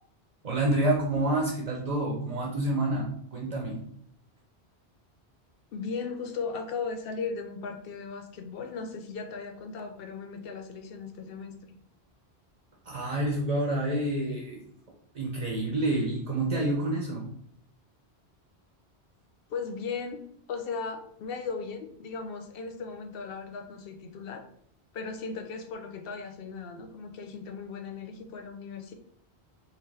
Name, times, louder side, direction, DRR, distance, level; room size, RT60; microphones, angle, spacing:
voice 1, 0.4-3.9 12.9-14.6 15.1-17.3, right 1 dB, 40° right, -1 dB, 0.7 m, -28 dB
voice 2, 5.7-11.5 19.5-24.5 24.9-28.9, left 5 dB, 65° left, 6 dB, 0.7 m, -37 dB
3.8 x 2.7 x 3.2 m, 0.66 s
omnidirectional pair, 1.1 m